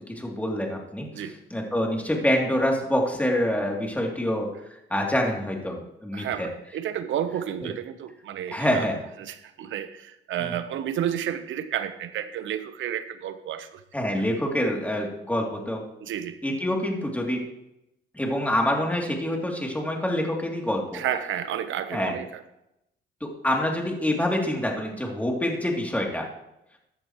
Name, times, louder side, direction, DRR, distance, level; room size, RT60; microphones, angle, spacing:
voice 1, 0.1-1.0 1.5-4.5 4.9-6.5 8.5-9.0 10.4-10.5 13.9-15.8 16.4-17.4 18.1-21.0 21.9-22.1 23.2-26.3, left 1 dB, 5° left, 0 dB, 3.1 m, -26 dB
voice 2, 6.1-8.9 9.2-13.8 16.0-16.4 20.9-22.4, right 10 dB, 75° right, 11 dB, 1.1 m, -31 dB
15.0 x 10.5 x 3.2 m, 0.84 s
cardioid pair, 90°, 20 cm